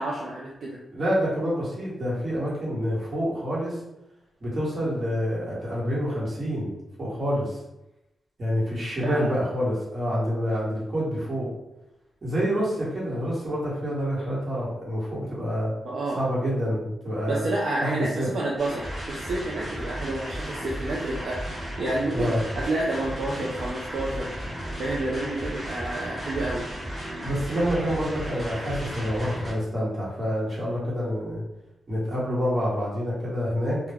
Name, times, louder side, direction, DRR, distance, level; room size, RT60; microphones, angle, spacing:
voice 1, 0.0-0.8 9.0-9.3 15.8-16.2 17.2-21.4 21.8-24.3 24.8-26.7, right 2 dB, 65° right, -4 dB, 0.4 m, -29 dB
voice 2, 0.9-3.8 4.4-7.6 8.4-11.5 12.2-15.7 16.1-17.4 17.8-18.3 22.1-22.4 27.2-31.4 31.9-33.8, equal, 40° right, -6 dB, 1.1 m, -27 dB
sound 1, 18.6-29.5, equal, 20° right, 0.9 m, -34 dB
2.2 x 2.0 x 3.4 m, 0.90 s
cardioid pair, 105°, 0 cm